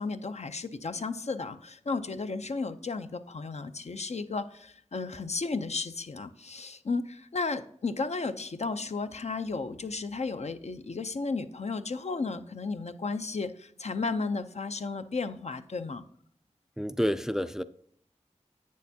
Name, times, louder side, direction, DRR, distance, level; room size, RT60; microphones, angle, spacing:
voice 1, 0.0-16.0, left 4 dB, 65° left, 9 dB, 0.5 m, -34 dB
voice 2, 16.8-17.6, equal, 5° right, 12 dB, 0.3 m, -29 dB
8.1 x 6.4 x 2.7 m, 0.64 s
wide cardioid pair, 55°, 12 cm